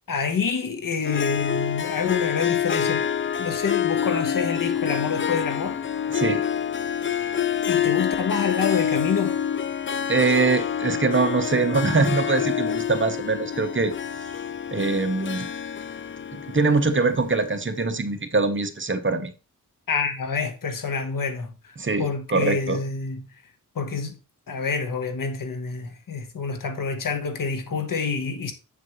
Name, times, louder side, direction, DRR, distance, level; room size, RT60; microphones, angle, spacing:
voice 1, 0.1-3.1 3.4-5.8 7.7-9.4 19.9-23.2 23.7-24.2 24.5-28.5, left 5 dB, 70° left, 1.4 m, -27 dB
Harp, 1.0-17.5, left 8 dB, 35° left, 0.5 m, -27 dB
voice 2, 6.1-6.5 10.1-13.9 14.7-15.5 16.3-19.3 21.8-22.8, right 3 dB, 35° right, 1.1 m, -23 dB
7.4 x 7.3 x 3.2 m
wide cardioid pair, 90°, 34 cm